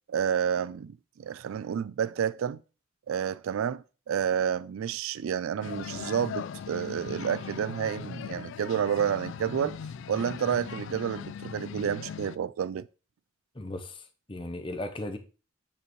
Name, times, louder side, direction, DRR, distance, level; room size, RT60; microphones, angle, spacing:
voice 1, 0.1-2.6 3.1-9.8 10.1-12.9, right 8 dB, 80° right, 0.3 m, -30 dB
sound 1, 5.6-12.4, left 7 dB, 65° left, 0.3 m, -39 dB
voice 2, 13.5-15.2, left 1 dB, 25° left, 0.8 m, -37 dB
8.5 x 5.4 x 3.1 m
head